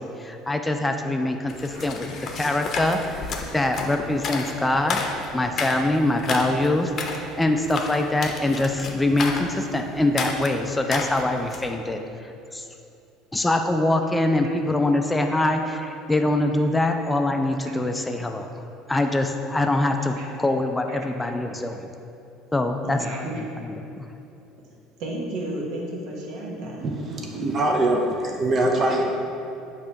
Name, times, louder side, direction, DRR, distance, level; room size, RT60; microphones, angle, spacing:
voice 1, 0.0-2.1 2.4-5.0 5.3-12.6 13.3-18.5 18.9-21.9 22.5-23.3 23.6-24.1, left 2 dB, 15° left, 5 dB, 0.4 m, -24 dB
sound 1, 1.5-11.7, left 4 dB, 45° left, 0.7 m, -32 dB
voice 2, 22.8-23.4 25.0-27.3 29.0-29.1, right 1 dB, 65° right, -2 dB, 1.0 m, -33 dB
voice 3, 26.8-29.0, right 2 dB, 40° right, 1 dB, 0.6 m, -23 dB
6.7 x 2.9 x 5.2 m, 2.6 s
hypercardioid pair, 65°, 0 cm